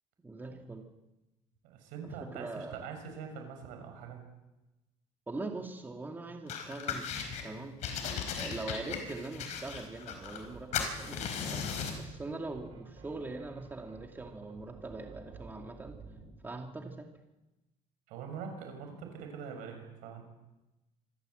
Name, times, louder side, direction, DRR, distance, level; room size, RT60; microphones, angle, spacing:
voice 1, 0.2-0.8 2.0-2.8 5.3-7.1 7.4-7.9 8.4-16.0 16.4-17.1, right 3 dB, 15° right, 3 dB, 2.2 m, -42 dB
voice 2, 1.6-4.2 18.1-20.2, right 6 dB, 80° right, 4 dB, 6.2 m, -43 dB
sound 1, 6.5-7.4 7.8-10.5 10.7-12.0, left 7 dB, 60° left, 4.9 m, -37 dB
sound 2, 9.8-16.4, right 4 dB, 45° right, 4.8 m, -52 dB
26.0 x 14.0 x 7.9 m, 1.0 s
cardioid pair, 125°, 13 cm